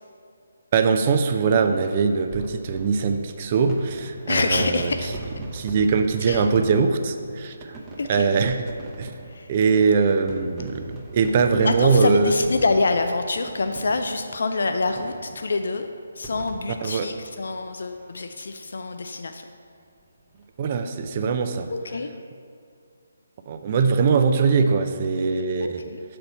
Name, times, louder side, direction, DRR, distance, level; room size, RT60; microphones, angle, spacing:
voice 1, 0.7-4.9 5.5-7.8 8.1-8.6 9.0-9.1 9.5-10.9 11.1-12.3 16.8-17.1 20.6-21.7 23.5-25.8, right 5 dB, 35° right, 7 dB, 0.5 m, -21 dB
sound 1, 2.3-18.2 18.5-18.6 18.8-18.9 20.2-20.4, right 2 dB, 15° right, 0.9 m, -41 dB
voice 2, 4.3-5.1 6.3-6.5 8.0-8.3 9.2-9.5 11.6-15.9 16.2-19.5 21.7-22.1 25.6-26.0, left 3 dB, 65° left, 7 dB, 0.4 m, -26 dB
6.7 x 4.3 x 5.4 m, 2.3 s
figure-of-eight pair, 155°, 0 cm